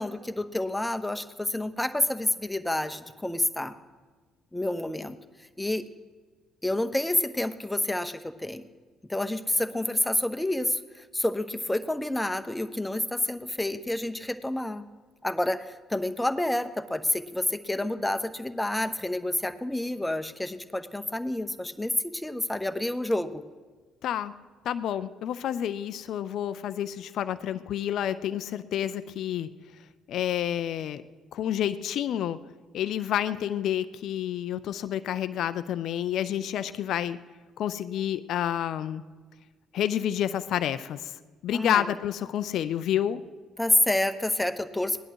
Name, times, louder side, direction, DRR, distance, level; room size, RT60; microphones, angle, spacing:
voice 1, 0.0-3.7 4.5-5.2 5.6-5.8 6.6-8.7 9.1-14.8 15.2-23.4 41.5-41.9 43.6-45.0, left 1 dB, 10° left, 9 dB, 0.9 m, -29 dB
voice 2, 24.0-24.3 24.6-29.5 30.1-31.0 31.3-32.4 32.7-37.2 37.6-39.0 39.7-43.2, left 10 dB, 65° left, 13 dB, 0.4 m, -29 dB
17.5 x 11.0 x 4.7 m, 1.4 s
hypercardioid pair, 50°, 0 cm